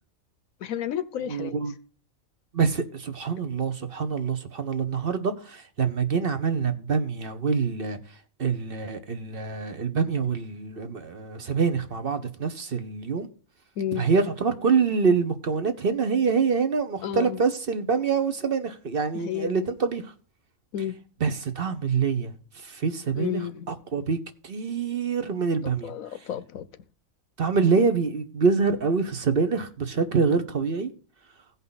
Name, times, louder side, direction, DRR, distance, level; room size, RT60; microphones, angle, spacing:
voice 1, 0.6-1.6 13.8-14.1 17.0-17.4 19.1-19.6 20.7-20.9 23.1-23.8 25.8-26.7, left 10 dB, 80° left, 1.2 m, -31 dB
voice 2, 1.3-1.7 2.5-8.0 8.4-13.3 14.0-20.0 21.2-22.3 22.7-23.4 23.7-24.2 24.4-25.9 27.4-30.9, right 5 dB, 45° right, 1.1 m, -25 dB
16.0 x 5.5 x 4.0 m
omnidirectional pair, 1.4 m